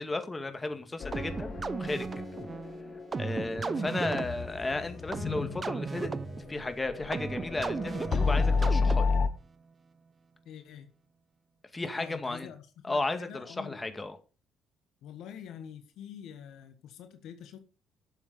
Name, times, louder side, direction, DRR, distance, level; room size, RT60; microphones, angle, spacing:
voice 1, 0.0-2.1 3.2-6.1 6.5-9.2 11.7-12.5 12.8-14.2, left 2 dB, 20° left, 2.2 m, -34 dB
sound 1, 1.0-9.3, left 4 dB, 50° left, 1.4 m, -32 dB
sound 2, 1.1-9.3, right 4 dB, 35° right, 0.8 m, -36 dB
voice 2, 3.7-4.2 10.4-10.9 11.9-13.8 15.0-17.6, left 9 dB, 70° left, 1.4 m, -46 dB
12.0 x 7.4 x 5.2 m
hypercardioid pair, 55°, 0 cm